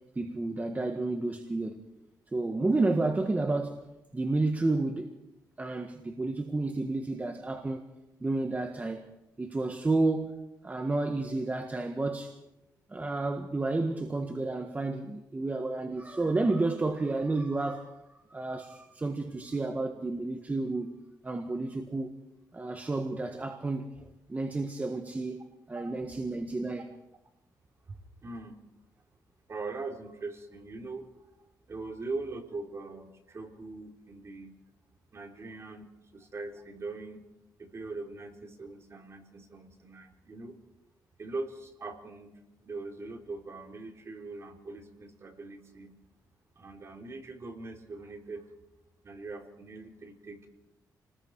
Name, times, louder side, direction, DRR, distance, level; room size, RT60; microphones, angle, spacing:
voice 1, 0.1-1.8 2.3-3.9 4.1-5.1 5.6-7.9 8.2-9.1 9.4-10.3 10.6-12.4 12.9-20.9 21.2-22.1 22.5-25.4 25.7-26.9, right 2 dB, 20° right, 1.6 m, -31 dB
voice 2, 28.2-28.6 29.5-31.1 31.7-34.6 35.1-37.2 37.6-40.6 41.2-42.3 42.6-45.9 46.6-48.5 49.0-50.5, right 3 dB, 40° right, 3.7 m, -41 dB
29.5 x 20.0 x 4.8 m
cardioid pair, 100°, 7 cm